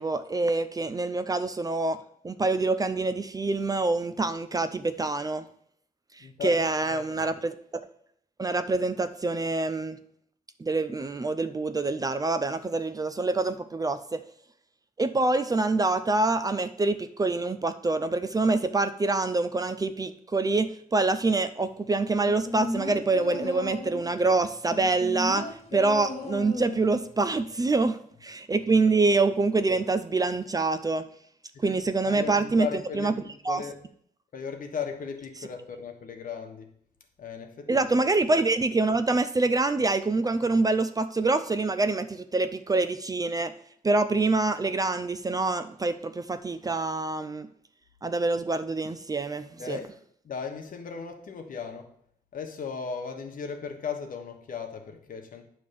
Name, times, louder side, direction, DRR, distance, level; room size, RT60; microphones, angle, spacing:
voice 1, 0.0-2.0 2.2-5.4 6.2-7.5 8.4-10.0 10.6-14.2 15.0-31.1 31.6-32.7 33.0-33.1 33.5-33.6 37.7-43.5 43.8-47.5 48.0-49.8, right 3 dB, 25° right, 11 dB, 0.5 m, -26 dB
voice 2, 6.2-7.3 28.6-28.7 31.5-31.8 32.0-33.8 34.3-36.7 37.2-37.8 49.6-49.9 50.2-51.9 52.3-55.4, left 6 dB, 60° left, 4 dB, 1.3 m, -37 dB
sound 1, 22.2-24.1 24.7-27.1 27.4-27.5, left 2 dB, 45° left, 1.8 m, -35 dB
9.3 x 3.4 x 6.9 m, 0.65 s
cardioid pair, 110°, 16 cm